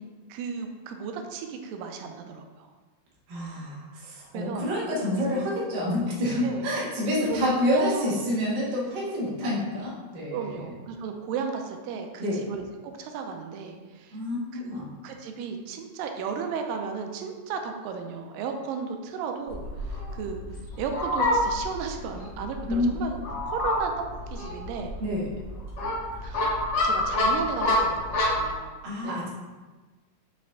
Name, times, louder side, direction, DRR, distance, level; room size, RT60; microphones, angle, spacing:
voice 1, 0.3-2.7 4.3-4.6 5.1-5.4 6.4-6.7 7.1-8.1 10.3-12.7 13.0-14.2 14.5-14.8 15.0-20.4 20.8-23.2 23.5-23.9 24.3-24.9 26.2-29.2, right 6 dB, 85° right, 4 dB, 2.2 m, -34 dB
voice 2, 3.3-10.6 12.2-12.4 14.1-14.9 22.7-22.9 25.0-25.3 28.8-29.3, left 1 dB, 50° right, -5 dB, 1.4 m, -28 dB
Fowl, 19.5-28.5, left 1 dB, 55° left, 1.3 m, -28 dB
6.0 x 4.8 x 3.6 m, 1.3 s
omnidirectional pair, 4.1 m